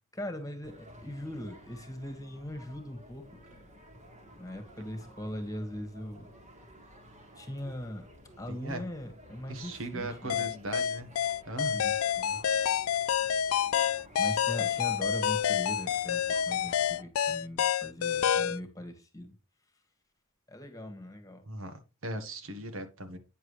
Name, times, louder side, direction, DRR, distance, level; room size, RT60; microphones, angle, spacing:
voice 1, 0.2-3.2 4.4-6.3 7.4-8.1 8.4-10.5 11.7-12.4 14.2-19.3 20.5-21.4, left 1 dB, 15° left, 1.7 m, -40 dB
sound 1, 0.6-17.0, equal, 35° right, 1.9 m, -53 dB
voice 2, 8.5-8.8 9.5-11.1 11.5-11.8 21.4-23.2, right 1 dB, 65° right, 1.4 m, -38 dB
sound 2, 10.3-18.6, left 9 dB, 75° left, 0.4 m, -28 dB
9.2 x 7.2 x 3.2 m
head